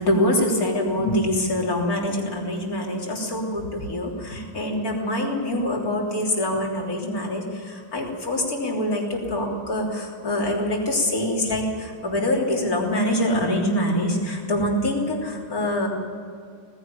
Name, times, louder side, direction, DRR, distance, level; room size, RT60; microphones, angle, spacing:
voice 1, 0.0-15.9, left 1 dB, 45° left, -1 dB, 3.9 m, -25 dB
19.5 x 16.0 x 9.2 m, 2.2 s
omnidirectional pair, 2.1 m